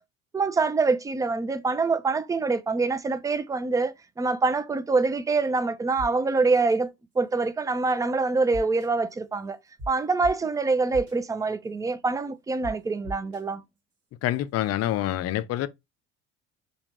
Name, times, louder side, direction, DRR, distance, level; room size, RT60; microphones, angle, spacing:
voice 1, 0.3-6.9 7.2-9.6 9.9-13.6, right 3 dB, 10° right, 0.4 m, -25 dB
sound 1, 6.0-6.1 6.5-6.6 8.5-8.9 9.8-9.9 10.2-10.3 10.9-11.1 12.6-12.7 13.0-13.4, equal, 45° right, 1.5 m, -36 dB
voice 2, 14.2-15.7, left 13 dB, 50° left, 0.5 m, -26 dB
3.5 x 2.3 x 2.9 m
hypercardioid pair, 65°, 33 cm